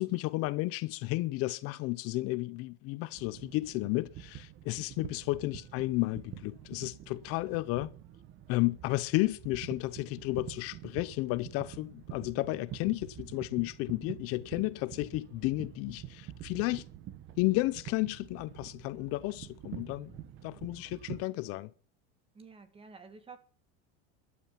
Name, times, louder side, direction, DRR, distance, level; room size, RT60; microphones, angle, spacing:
voice 1, 0.0-7.9 8.5-16.8 17.4-20.1 20.4-21.7, left 20 dB, 50° left, 0.6 m, -32 dB
sound 1, 3.1-21.2, right 11 dB, 40° right, 1.3 m, -47 dB
voice 2, 22.3-23.4, right 4 dB, 20° right, 2.0 m, -50 dB
13.5 x 12.0 x 5.8 m
cardioid pair, 155°, 30 cm